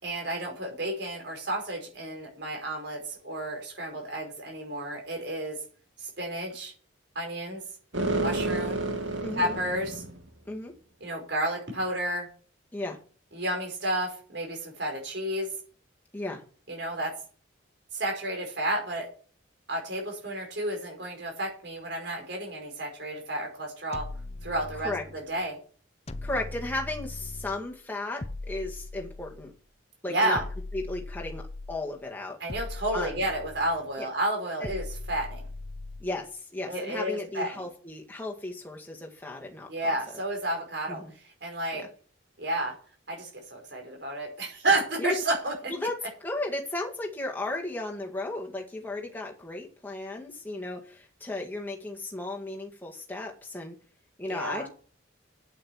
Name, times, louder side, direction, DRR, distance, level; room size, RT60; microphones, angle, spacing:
voice 1, 0.0-5.6 6.0-6.7 7.2-7.6 8.2-8.9 9.4-10.0 11.0-12.3 13.3-15.5 16.7-17.1 17.9-19.1 19.7-24.0 24.4-25.6 30.1-30.4 32.4-35.4 36.7-37.7 39.7-41.0 41.4-41.8 42.4-42.7 43.1-45.7 54.3-54.7, right 1 dB, 60° right, 1 dB, 5.3 m, -31 dB
sound 1, 7.9-10.3, right 2 dB, 75° right, 2.2 m, -30 dB
voice 2, 9.2-9.6 10.5-10.7 12.7-13.0 16.1-16.4 24.8-25.0 26.2-29.5 30.0-30.4 30.7-32.4 32.9-33.2 34.0-34.1 34.6-34.7 36.0-40.0 40.9-41.1 41.7-41.9 45.0-45.2 45.7-45.9 46.2-53.8 54.2-54.7, left 2 dB, 10° left, 0 dB, 1.9 m, -35 dB
sound 2, 23.9-25.2 26.1-27.7 28.2-29.6 30.3-32.0 32.5-33.9 34.6-36.2, left 2 dB, 30° left, 0.7 m, -39 dB
8.9 x 8.5 x 7.3 m, 0.41 s
head